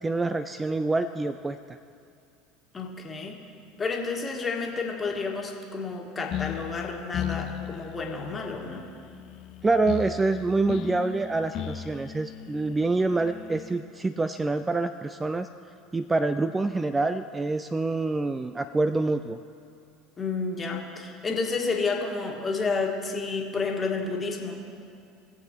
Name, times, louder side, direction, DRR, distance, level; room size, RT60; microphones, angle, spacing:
voice 1, 0.0-1.6 9.6-15.5 15.9-19.4, right 3 dB, 15° right, 11 dB, 0.3 m, -26 dB
voice 2, 2.7-3.4 3.8-8.9 20.2-24.6, left 4 dB, 25° left, 1 dB, 1.7 m, -30 dB
sound 1, 6.3-13.8, left 9 dB, 50° left, 0.6 m, -37 dB
20.0 x 7.5 x 3.0 m, 2.5 s
figure-of-eight pair, 70°, 0 cm